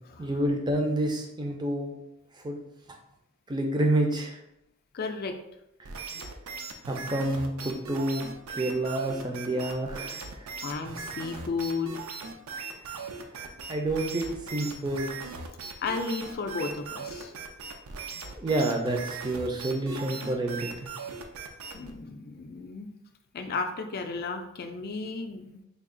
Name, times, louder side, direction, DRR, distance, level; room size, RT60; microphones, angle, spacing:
voice 1, 0.2-1.9 2.4-2.6 3.5-4.4 6.9-8.2 8.5-10.5 12.5-13.0 13.3-15.1 18.0-18.1 18.3-20.9, right 1 dB, 20° right, 2 dB, 0.4 m, -29 dB
voice 2, 4.9-5.4 6.1-6.3 10.6-12.0 15.8-17.3 21.7-22.9 23.3-25.5, left 4 dB, 45° left, 5 dB, 0.4 m, -33 dB
sound 1, 5.8-21.9, right 4 dB, 75° right, 0.5 m, -39 dB
3.4 x 2.3 x 3.7 m, 0.82 s
head